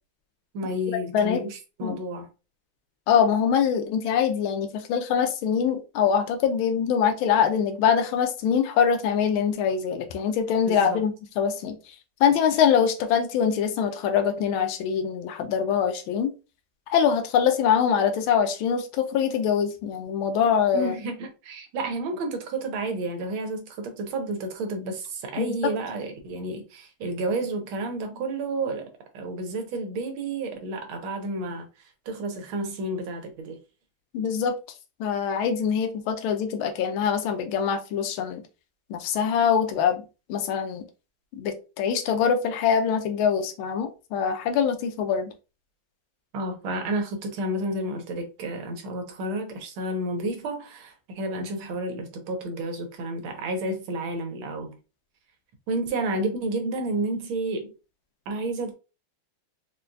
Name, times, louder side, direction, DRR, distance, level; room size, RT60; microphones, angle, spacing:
voice 1, 0.5-2.3 10.6-11.0 20.7-31.7 32.0-33.6 46.3-54.8 55.7-57.7 58.3-58.7, right 2 dB, 80° right, 1.7 m, -31 dB
voice 2, 3.1-11.8 12.2-16.3 16.9-20.9 25.4-25.5 34.1-34.6 35.0-38.4 38.9-40.0 40.3-40.8 41.3-45.3, left 7 dB, 80° left, 1.5 m, -23 dB
4.4 x 2.3 x 2.5 m
omnidirectional pair, 2.2 m